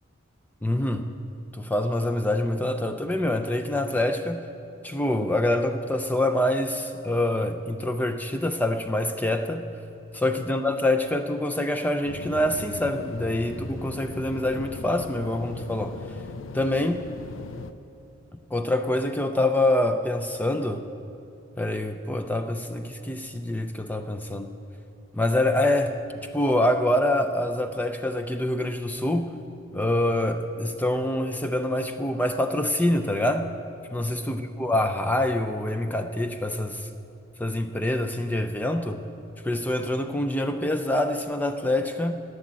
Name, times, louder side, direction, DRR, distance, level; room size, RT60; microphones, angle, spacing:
voice 1, 0.6-1.1 1.5-4.5 4.8-9.7 10.1-16.0 16.5-17.1 18.5-20.9 21.6-24.5 25.1-26.0 26.3-29.4 29.7-33.5 33.9-36.9 37.4-39.0 39.4-42.1, left 1 dB, 10° left, 7 dB, 0.4 m, -25 dB
sound 1, 12.0-17.7, left 4 dB, 70° left, 0.5 m, -38 dB
11.5 x 10.0 x 7.4 m, 2.7 s
head